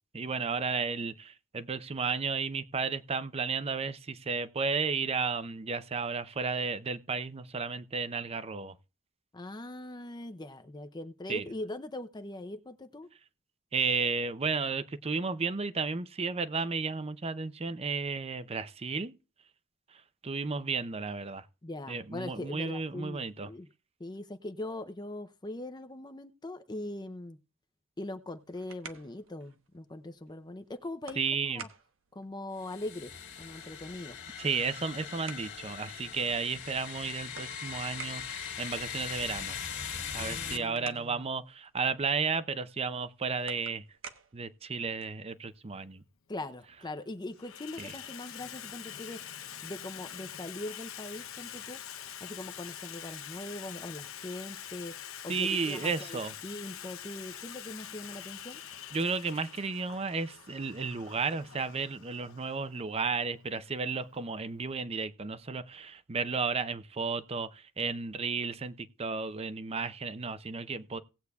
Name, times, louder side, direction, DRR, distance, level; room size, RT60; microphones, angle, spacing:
voice 1, 0.1-8.8 11.3-11.4 13.7-19.1 20.2-21.5 21.9-23.5 31.2-31.7 34.4-39.6 40.1-43.8 44.3-46.0 47.8-47.9 55.3-56.3 58.9-71.0, right 4 dB, 30° right, 0.6 m, -33 dB
voice 2, 9.3-13.1 21.6-23.7 24.0-27.4 28.0-31.2 31.5-31.7 32.1-34.2 40.1-41.2 46.3-49.2 49.6-58.6, left 2 dB, 20° left, 0.6 m, -41 dB
sound 1, 28.2-45.3, right 5 dB, 75° right, 1.1 m, -52 dB
sound 2, 32.6-40.6, left 7 dB, 60° left, 2.1 m, -40 dB
Water tap faucet / Sink (filling or washing), 45.4-45.5 46.5-46.9 47.2-64.8, left 10 dB, 85° left, 0.8 m, -45 dB
18.5 x 8.2 x 2.3 m
head